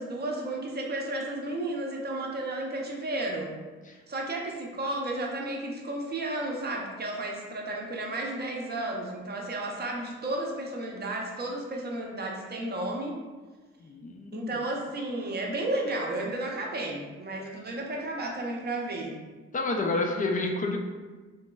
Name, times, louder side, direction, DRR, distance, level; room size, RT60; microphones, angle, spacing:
voice 1, 0.0-3.5 4.1-13.2 14.3-19.2, right 1 dB, 35° right, 0 dB, 0.6 m, -33 dB
voice 2, 13.8-14.5 19.5-20.8, left 2 dB, 30° left, 2 dB, 0.4 m, -29 dB
3.2 x 2.9 x 2.2 m, 1.3 s
cardioid pair, 90°, 30 cm